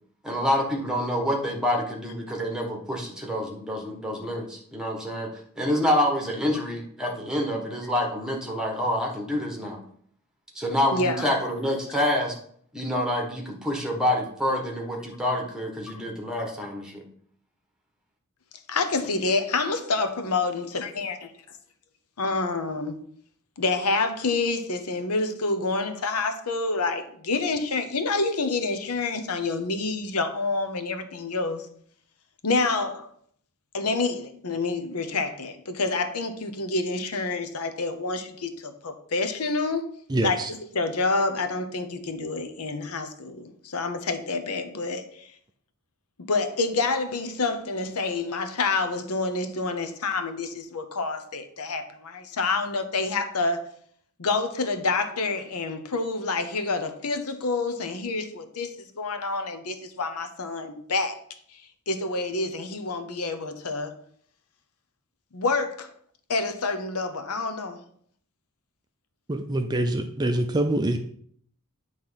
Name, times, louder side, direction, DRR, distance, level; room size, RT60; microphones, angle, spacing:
voice 1, 0.2-5.3 5.6-9.8 10.5-12.4 12.7-17.0, left 1 dB, 5° right, 1.3 m, -27 dB
voice 2, 10.9-11.2 18.7-21.3 22.2-23.0 23.6-31.7 32.4-33.1 33.7-39.9 40.2-40.4 40.7-45.3 46.2-53.7 54.2-61.2 61.5-61.6 61.9-64.0 65.3-65.9 66.3-67.8, left 3 dB, 85° left, 0.8 m, -28 dB
voice 3, 40.1-40.5 69.3-71.0, right 1 dB, 20° right, 0.4 m, -25 dB
8.8 x 3.2 x 5.7 m
head